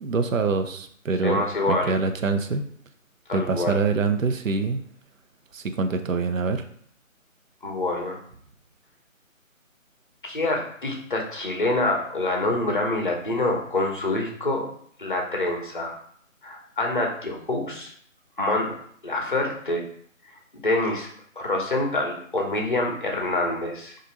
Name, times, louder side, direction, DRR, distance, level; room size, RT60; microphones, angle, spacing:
voice 1, 0.0-2.6 3.3-4.8 5.5-6.6, right 4 dB, 75° right, 8 dB, 0.5 m, -25 dB
voice 2, 1.2-2.0 3.3-3.8 7.6-8.2 10.2-14.7 15.0-16.0 16.4-17.9 18.4-18.8 19.0-19.8 20.5-21.1 21.4-24.0, left 2 dB, 40° left, 0 dB, 0.6 m, -26 dB
2.8 x 2.5 x 4.1 m, 0.62 s
figure-of-eight pair, 165°, 40 cm